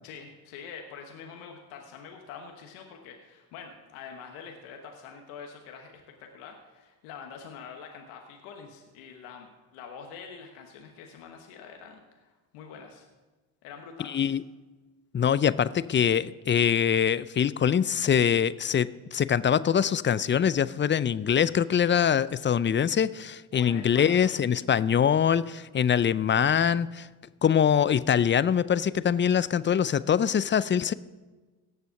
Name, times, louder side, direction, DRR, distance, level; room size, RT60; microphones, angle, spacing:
voice 1, 0.0-13.1 13.6-14.3 23.5-24.4, left 6 dB, 90° left, 3 dB, 1.3 m, -45 dB
voice 2, 14.0-14.4 15.1-27.1 27.4-30.9, left 8 dB, 25° left, 17 dB, 0.4 m, -24 dB
17.5 x 6.9 x 5.8 m, 1.3 s
supercardioid pair, 60°, 49 cm